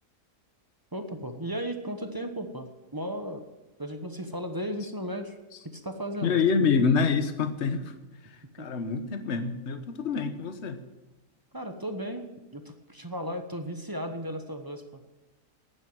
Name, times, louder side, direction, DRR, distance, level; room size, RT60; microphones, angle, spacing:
voice 1, 0.9-3.4 3.8-5.4 5.7-6.4 8.6-8.7 11.5-15.0, equal, 15° right, 6 dB, 1.0 m, -35 dB
voice 2, 6.2-7.9 8.6-10.8, left 5 dB, 50° left, 9 dB, 1.2 m, -26 dB
11.0 x 9.2 x 9.1 m, 1.1 s
omnidirectional pair, 1.7 m